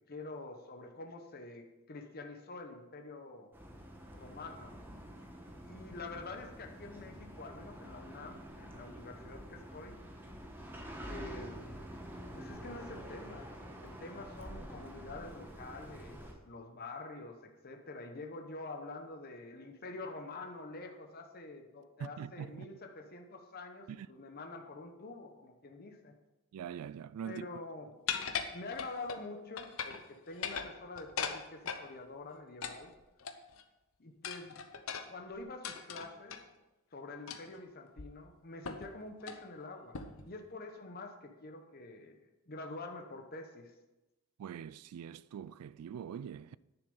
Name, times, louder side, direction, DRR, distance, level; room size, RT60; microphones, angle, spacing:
voice 1, 0.1-3.5 4.1-4.7 5.6-10.0 11.0-11.8 12.3-26.1 27.2-28.2 28.5-32.9 34.0-34.6 35.1-36.4 36.9-42.2 42.5-43.7, left 2 dB, 45° left, 0.9 m, -47 dB
sound 1, 3.5-16.3, equal, 10° right, 1.3 m, -48 dB
voice 2, 22.0-22.7 23.9-24.1 26.5-27.5 44.4-46.6, right 8 dB, 85° right, 0.3 m, -43 dB
sound 2, 28.1-29.2 29.6-30.0 30.3-31.9 32.6-33.6 34.2-36.4 37.3-37.6 38.0-38.1 38.6-38.9 39.2-39.4 39.9-40.3, left 7 dB, 70° left, 0.8 m, -39 dB
10.0 x 6.9 x 5.4 m
head